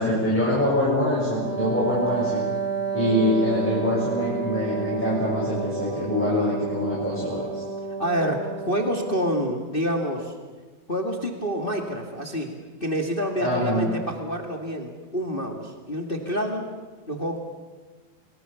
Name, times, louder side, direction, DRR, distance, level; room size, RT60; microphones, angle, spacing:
voice 1, 0.0-2.5 2.9-7.6 13.4-13.9, left 1 dB, 5° left, -7 dB, 6.5 m, -24 dB
Wind instrument woodwind instrument, 1.4-9.4, right 4 dB, 75° right, 5.1 m, -30 dB
voice 2, 8.0-10.3 10.9-12.5 12.8-16.7 17.1-17.4, equal, 20° left, 3 dB, 1.4 m, -27 dB
28.5 x 21.0 x 7.1 m, 1.3 s
omnidirectional pair, 4.4 m